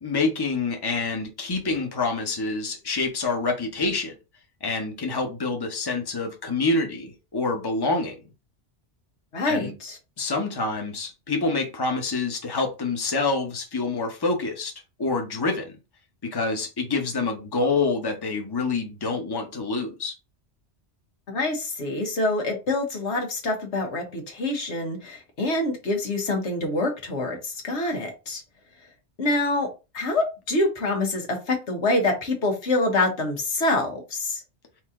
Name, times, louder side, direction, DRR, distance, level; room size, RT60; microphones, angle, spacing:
voice 1, 0.0-4.1 4.6-8.2 9.5-9.7 10.2-14.7 15.0-15.7 16.2-20.1, left 3 dB, 25° left, 0.9 m, -27 dB
voice 2, 9.3-10.0 21.3-28.4 29.2-29.7 29.9-34.4, left 2 dB, 90° left, 1.5 m, -26 dB
4.6 x 2.8 x 3.6 m
omnidirectional pair, 1.1 m